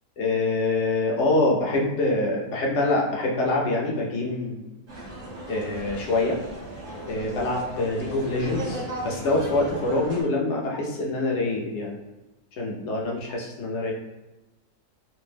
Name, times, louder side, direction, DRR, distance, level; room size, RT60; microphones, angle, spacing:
voice 1, 0.2-4.7 5.5-6.4 7.0-12.0 12.6-13.9, left 2 dB, 65° left, -2 dB, 0.7 m, -25 dB
sound 1, 4.9-10.2, right 1 dB, 40° right, 0.6 m, -36 dB
2.6 x 2.1 x 3.3 m, 1.0 s
omnidirectional pair, 1.6 m